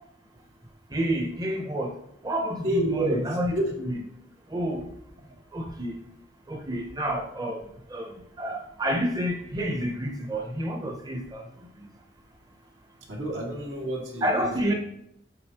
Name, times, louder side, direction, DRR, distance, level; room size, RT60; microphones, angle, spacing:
voice 1, 0.9-1.9 2.2-3.5 3.8-4.0 4.5-4.8 5.5-6.0 6.5-7.6 7.9-8.1 8.4-11.4 14.2-14.7, equal, 20° right, 2 dB, 0.7 m, -29 dB
voice 2, 2.6-3.3 3.5-3.7 13.1-14.7, right 1 dB, 85° right, -2 dB, 1.9 m, -28 dB
7.7 x 5.2 x 2.9 m, 0.76 s
head